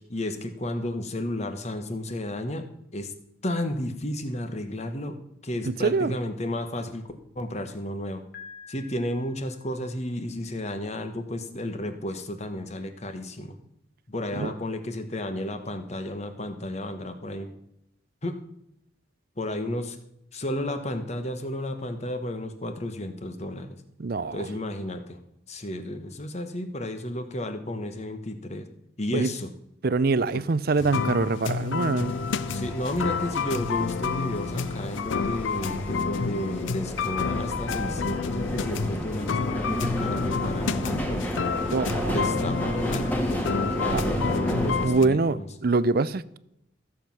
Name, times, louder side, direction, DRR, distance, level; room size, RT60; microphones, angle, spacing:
voice 1, 0.1-2.7 2.9-3.1 3.4-5.2 5.4-7.1 7.3-8.2 8.7-13.6 14.1-17.5 18.2-18.4 19.4-20.0 20.3-23.7 24.3-25.2 25.5-28.7 29.0-29.5 30.3-30.4 32.5-41.2 42.1-45.5, left 1 dB, 35° left, 1.3 m, -32 dB
voice 2, 5.6-6.1 14.4-14.5 24.0-24.5 29.1-29.3 29.8-32.1 41.7-42.2 43.9-44.3 44.7-46.4, right 3 dB, 50° right, 0.5 m, -25 dB
Piano, 8.3-10.3, left 6 dB, 50° left, 1.9 m, -48 dB
sound 1, 30.7-45.1, left 6 dB, 75° left, 0.5 m, -30 dB
sound 2, 32.0-44.9, equal, 10° left, 1.7 m, -32 dB
14.5 x 7.4 x 6.0 m
head